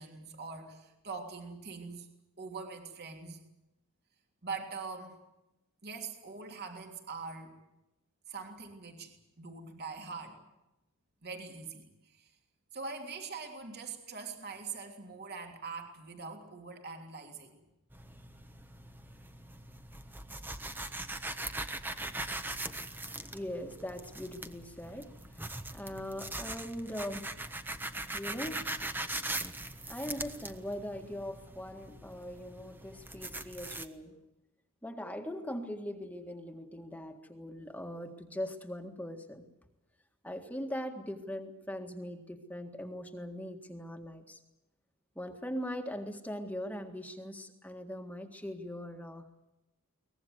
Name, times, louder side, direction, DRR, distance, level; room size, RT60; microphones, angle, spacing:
voice 1, 0.0-2.1 2.4-3.4 4.4-5.2 5.8-7.5 8.3-10.4 11.2-12.3 12.7-17.6 21.4-21.6 22.0-22.3 28.3-28.4, right 4 dB, 50° right, 4 dB, 3.2 m, -43 dB
sound 1, 17.9-33.9, right 2 dB, 10° right, 1.2 m, -41 dB
voice 2, 23.3-27.3 28.1-28.7 29.9-34.2 34.8-39.5 40.2-44.4 45.1-49.3, equal, 5° left, 5 dB, 1.8 m, -41 dB
23.0 x 20.0 x 8.1 m, 0.92 s
head